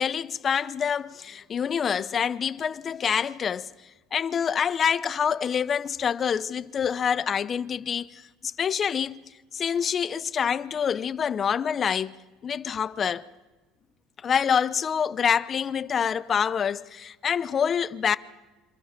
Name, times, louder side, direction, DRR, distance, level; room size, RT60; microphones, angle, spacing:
voice 1, 0.0-3.7 4.1-9.2 9.5-12.2 12.4-13.3 14.2-18.2, left 7 dB, 25° left, 0.7 m, -26 dB
26.5 x 26.5 x 5.9 m
cardioid pair, 165°, 0 cm